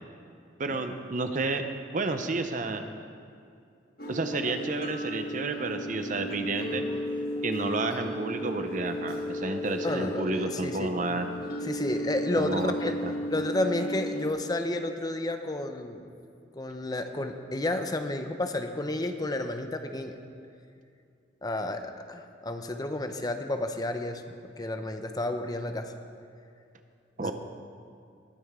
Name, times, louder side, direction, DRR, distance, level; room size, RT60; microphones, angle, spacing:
voice 1, 0.6-1.7 1.9-2.8 4.1-6.8 7.4-11.3 12.4-13.1 27.2-27.3, right 3 dB, 45° right, 7 dB, 0.8 m, -31 dB
sound 1, 4.0-14.3, equal, 55° left, 1.4 m, -34 dB
voice 2, 9.8-10.9 11.6-13.0 13.3-16.1 16.6-20.2 21.4-24.2 24.6-25.9 27.2-27.3, left 1 dB, 20° left, 7 dB, 0.6 m, -31 dB
20.5 x 9.8 x 3.7 m, 2.4 s
head